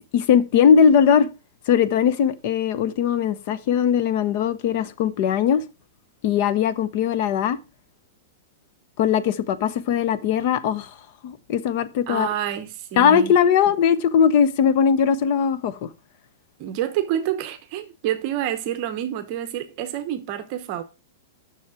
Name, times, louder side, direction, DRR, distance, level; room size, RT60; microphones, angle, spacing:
voice 1, 0.1-1.3 1.7-5.6 6.2-7.6 9.0-10.9 11.2-12.3 13.0-15.9, left 7 dB, 45° left, 0.8 m, -19 dB
voice 2, 12.1-13.3 16.6-20.8, right 11 dB, 40° right, 0.9 m, -28 dB
7.2 x 6.4 x 4.8 m
supercardioid pair, 160°, 0 cm